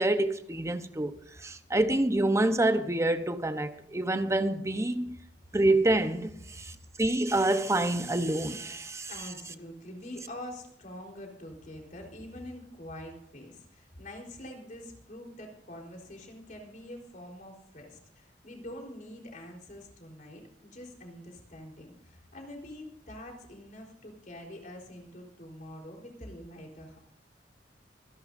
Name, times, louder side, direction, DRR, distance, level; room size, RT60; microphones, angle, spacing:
voice 1, 0.0-5.1 5.5-9.1, right 1 dB, 15° right, 0.9 m, -27 dB
voice 2, 9.1-27.0, left 1 dB, 50° left, 4.0 m, -45 dB
26.0 x 11.0 x 2.7 m
head